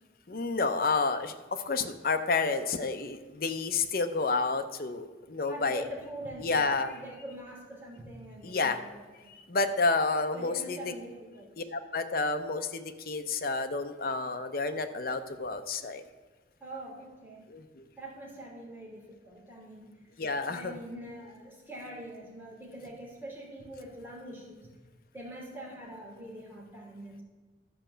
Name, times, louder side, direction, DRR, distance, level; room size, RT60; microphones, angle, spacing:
voice 1, 0.3-5.8 6.4-7.0 8.4-8.8 9.3-10.9 11.6-16.0 17.5-17.8 20.2-20.8, left 3 dB, 55° left, 7 dB, 0.7 m, -30 dB
voice 2, 5.5-9.0 10.3-11.5 16.6-17.4 18.0-20.0 20.5-24.7 25.1-27.2, right 1 dB, 10° right, -5 dB, 2.9 m, -44 dB
12.5 x 5.0 x 6.8 m, 1.3 s
head